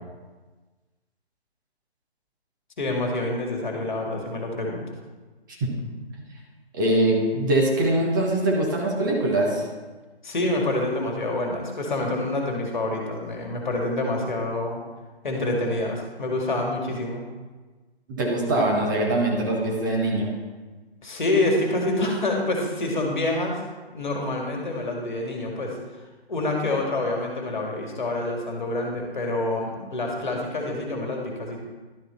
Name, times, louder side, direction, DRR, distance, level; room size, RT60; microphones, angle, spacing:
voice 1, 2.8-4.8 10.2-14.8 15.2-17.3 21.0-23.6 23.9-25.8 26.3-31.6, left 2 dB, 45° left, 1 dB, 2.0 m, -27 dB
voice 2, 6.7-9.7 18.1-20.3, right 1 dB, 20° right, -2 dB, 1.3 m, -23 dB
12.0 x 6.6 x 4.3 m, 1.3 s
figure-of-eight pair, 145°, 32 cm